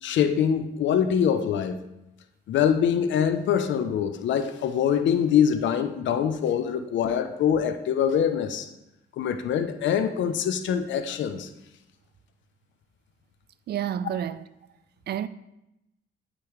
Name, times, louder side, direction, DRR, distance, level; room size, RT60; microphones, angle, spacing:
voice 1, 0.0-1.8 2.5-8.7 9.2-11.5, left 8 dB, 70° left, 0.6 m, -24 dB
voice 2, 13.7-14.4 15.1-15.3, right 10 dB, 55° right, 0.4 m, -29 dB
8.4 x 5.1 x 3.1 m
cardioid pair, 90°, 20 cm